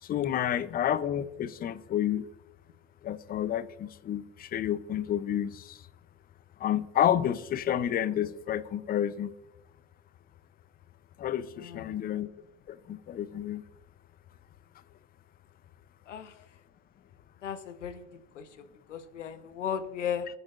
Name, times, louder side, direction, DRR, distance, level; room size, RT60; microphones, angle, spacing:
voice 1, 0.0-2.3 3.0-5.8 6.6-9.3 11.2-12.3 12.7-13.6, left 10 dB, 25° left, 0.7 m, -30 dB
voice 2, 11.6-12.0 16.1-16.4 17.4-18.1 18.3-18.5 18.9-20.3, left 8 dB, 85° left, 1.3 m, -35 dB
27.5 x 9.5 x 2.6 m
hypercardioid pair, 105°, 36 cm